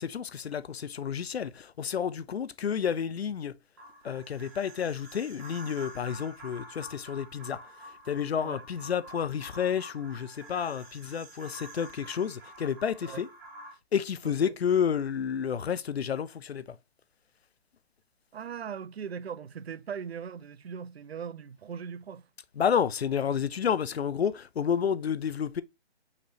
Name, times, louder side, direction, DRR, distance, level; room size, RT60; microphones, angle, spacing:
voice 1, 0.0-3.5 4.0-7.6 8.1-13.3 13.9-16.6 22.6-25.6, left 7 dB, 70° left, 0.6 m, -30 dB
sound 1, 3.8-13.7, right 1 dB, 20° right, 1.1 m, -48 dB
voice 2, 14.2-14.6 18.3-22.2, right 7 dB, 70° right, 0.5 m, -39 dB
5.7 x 3.1 x 2.8 m
figure-of-eight pair, 155°, 32 cm